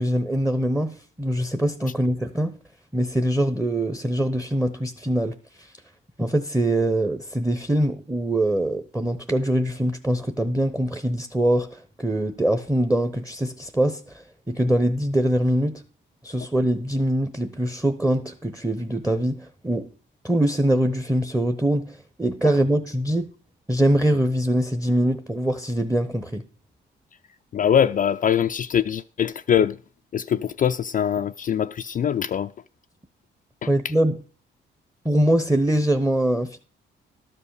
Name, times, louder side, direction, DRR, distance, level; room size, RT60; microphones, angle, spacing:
voice 1, 0.0-2.6 2.9-5.7 6.2-15.8 16.2-19.9 20.2-23.3 23.7-26.4 33.6-34.2 35.0-36.6, right 1 dB, 5° right, 0.8 m, -23 dB
voice 2, 27.5-29.8 30.1-32.5, left 9 dB, 40° left, 0.4 m, -22 dB
12.5 x 5.6 x 6.5 m
cardioid pair, 90°, 20 cm